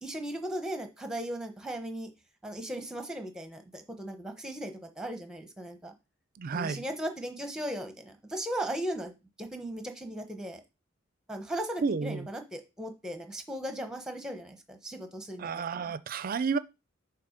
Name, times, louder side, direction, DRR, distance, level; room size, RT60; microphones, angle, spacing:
voice 1, 0.0-2.1 2.4-5.9 6.5-9.1 9.4-10.6 11.3-15.9, right 1 dB, 5° right, 0.9 m, -37 dB
voice 2, 6.4-6.8 11.8-12.3 15.4-16.6, right 5 dB, 45° right, 0.4 m, -31 dB
6.8 x 2.9 x 5.0 m
head